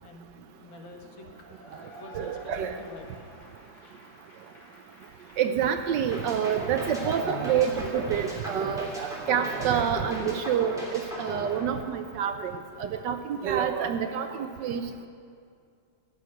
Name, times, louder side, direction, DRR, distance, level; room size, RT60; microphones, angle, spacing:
voice 1, 0.0-1.3 2.0-3.1, left 3 dB, 75° left, 2 dB, 2.1 m, -47 dB
Cheering / Applause / Crowd, 1.2-8.9, left 1 dB, 35° left, 2.5 m, -52 dB
voice 2, 2.1-2.8 5.4-14.8, right 8 dB, 70° right, 8 dB, 1.1 m, -28 dB
sound 1, 6.1-12.3, right 1 dB, ahead, 3.1 m, -37 dB
14.5 x 6.4 x 9.6 m, 2.3 s
omnidirectional pair, 2.2 m